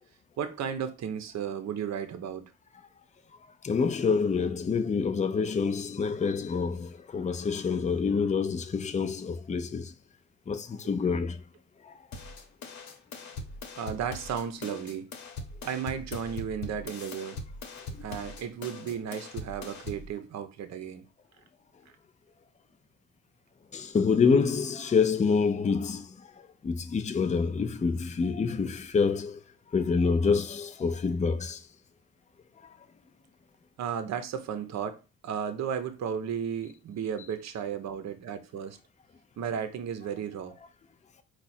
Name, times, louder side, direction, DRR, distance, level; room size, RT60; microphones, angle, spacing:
voice 1, 0.4-2.5 13.8-15.1 15.6-17.4 18.0-21.0 33.8-38.8 39.4-40.6, right 8 dB, 60° right, 0.8 m, -34 dB
voice 2, 3.6-9.9 10.5-11.4 23.7-26.1 26.6-29.4 29.7-31.6, left 5 dB, 25° left, 0.6 m, -27 dB
sound 1, 12.1-20.1, left 3 dB, 65° left, 1.1 m, -41 dB
4.7 x 2.4 x 4.2 m
cardioid pair, 90°, 30 cm